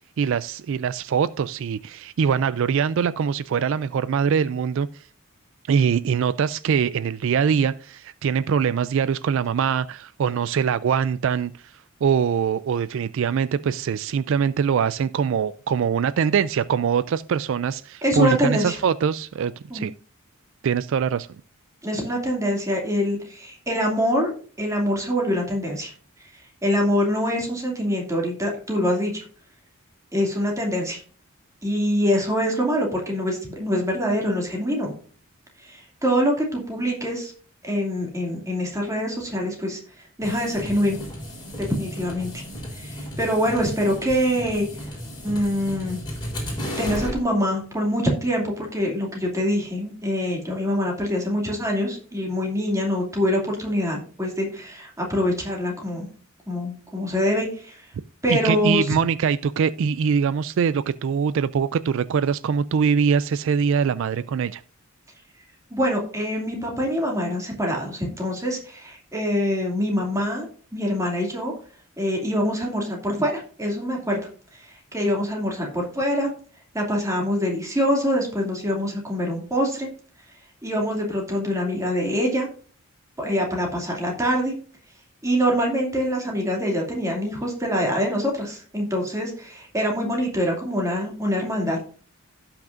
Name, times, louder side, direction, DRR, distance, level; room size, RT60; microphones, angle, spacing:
voice 1, 0.2-5.1 5.7-19.9 20.6-21.3 58.3-64.6, right 7 dB, 60° right, 0.3 m, -23 dB
voice 2, 18.0-18.8 19.7-19.9 21.8-24.3 24.6-25.9 26.6-29.2 30.1-31.0 31.6-34.9 35.6-37.3 37.6-39.8 40.2-41.0 41.7-42.4 42.7-44.7 45.2-46.0 46.8-56.1 56.5-57.9 58.2-58.9 65.7-70.5 70.7-71.5 72.0-74.2 74.6-76.3 76.7-79.9 80.6-82.5 83.2-84.5 85.2-91.8, equal, 15° right, 2.5 m, -24 dB
sound 1, 40.2-47.2, equal, 20° left, 3.7 m, -34 dB
16.5 x 6.0 x 2.6 m
head